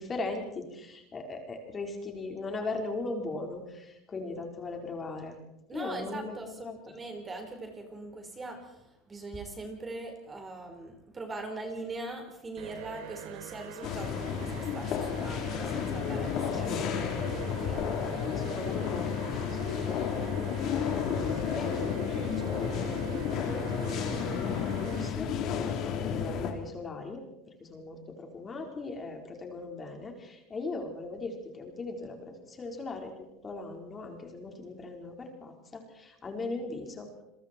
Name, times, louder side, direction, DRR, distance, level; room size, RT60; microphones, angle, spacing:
voice 1, 0.0-5.3 5.7-6.8 16.5-16.8 18.3-19.7 20.4-21.2 21.5-27.2 27.6-33.1 33.4-37.1, left 3 dB, 25° left, 3 dB, 4.4 m, -39 dB
voice 2, 5.7-18.2, right 2 dB, 20° right, 5 dB, 4.5 m, -41 dB
sound 1, 12.6-25.1, right 11 dB, 70° right, 1.9 m, -44 dB
sound 2, 13.8-26.5, left 7 dB, 50° left, 3.7 m, -32 dB
29.0 x 22.0 x 4.5 m, 0.86 s
supercardioid pair, 120°, 0 cm